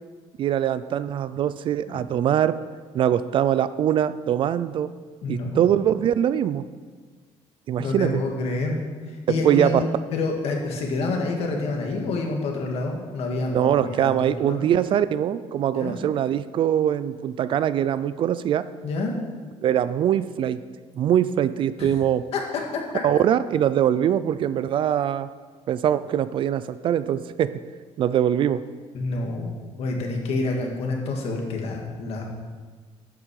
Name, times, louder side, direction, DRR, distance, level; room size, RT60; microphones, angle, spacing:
voice 1, 0.4-2.6 2.9-4.9 5.3-6.6 7.7-8.2 9.4-9.8 13.5-18.7 19.6-20.6 21.0-22.2 23.0-25.3 25.7-27.5 28.0-28.6, right 10 dB, 45° right, 14 dB, 0.4 m, -22 dB
voice 2, 5.2-5.7 7.8-8.8 9.3-14.7 15.7-16.0 18.8-19.1 21.8-21.9 22.3-22.4 22.7-23.0 28.9-32.3, left 3 dB, 55° left, 1 dB, 2.0 m, -28 dB
12.0 x 8.9 x 4.8 m, 1.5 s
cardioid pair, 170°, 12 cm